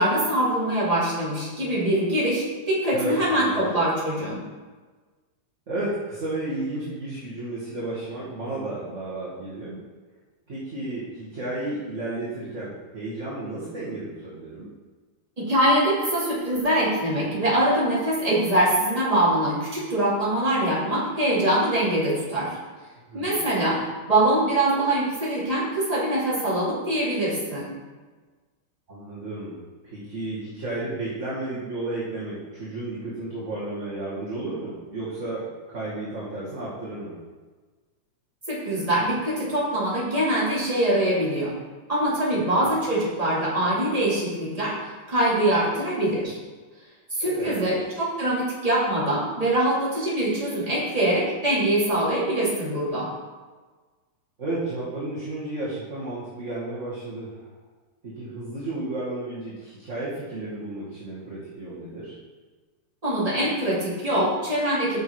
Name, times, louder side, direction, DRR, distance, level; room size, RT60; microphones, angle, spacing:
voice 1, 0.0-4.4 15.4-22.5 23.1-23.8 24.1-27.7 38.5-41.5 41.9-44.7 45.1-46.4 47.1-53.1 63.0-65.0, right 1 dB, 10° right, -9 dB, 2.7 m, -23 dB
voice 2, 2.9-3.6 5.7-9.8 10.5-14.7 23.1-23.4 28.9-37.1 42.4-42.8 47.2-47.8 54.4-57.5 58.0-62.1, right 2 dB, 30° right, -8 dB, 1.7 m, -33 dB
9.0 x 6.2 x 4.8 m, 1.4 s
omnidirectional pair, 3.6 m